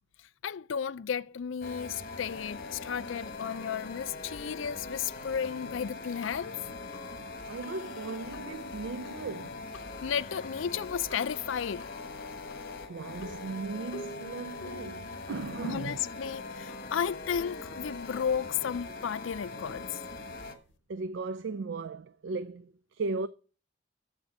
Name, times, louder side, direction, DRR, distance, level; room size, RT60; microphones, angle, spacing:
voice 1, 0.4-6.6 10.0-11.9 15.6-20.0, left 7 dB, 80° left, 0.4 m, -33 dB
sound 1, 1.6-20.5, left 3 dB, 50° left, 1.4 m, -42 dB
sound 2, 5.4-20.8, left 2 dB, 65° left, 0.9 m, -52 dB
voice 2, 7.5-9.7 12.9-16.0 20.3-20.4 20.9-23.3, right 4 dB, 70° right, 0.4 m, -37 dB
8.9 x 7.4 x 6.3 m
head